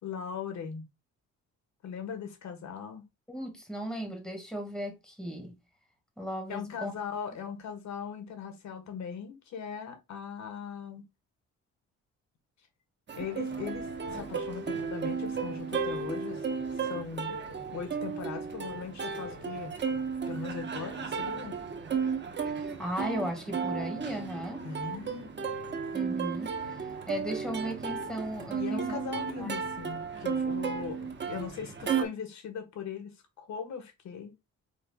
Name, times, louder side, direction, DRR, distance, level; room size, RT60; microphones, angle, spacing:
voice 1, 0.0-0.8 1.8-3.0 6.5-11.0 13.2-16.4 16.7-17.3 17.7-19.7 20.3-21.6 24.6-25.3 28.5-34.3, left 7 dB, 65° left, 1.5 m, -39 dB
voice 2, 3.3-5.6 6.2-6.9 22.5-24.6 25.9-29.0 29.4-29.6, equal, ahead, 2.0 m, -36 dB
Plucked string instrument, 13.1-32.0, right 6 dB, 35° right, 1.2 m, -34 dB
4.8 x 4.5 x 2.3 m
cardioid pair, 90°, 30 cm